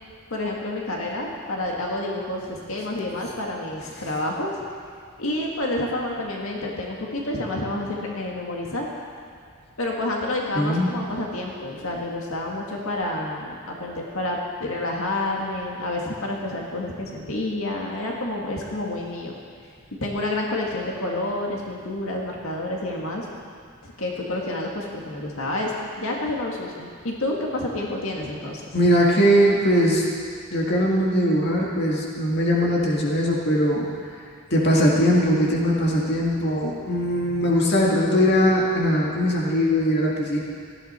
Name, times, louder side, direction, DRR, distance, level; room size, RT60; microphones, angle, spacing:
voice 1, 0.3-4.5 5.2-8.9 9.8-19.3 20.0-23.3 23.8-25.7 26.0-28.8, left 1 dB, 70° left, -1 dB, 1.9 m, -29 dB
voice 2, 10.6-10.9 28.7-30.0 30.5-33.9 34.5-40.4, equal, 50° left, -3 dB, 1.9 m, -20 dB
18.5 x 14.0 x 4.4 m, 2.1 s
head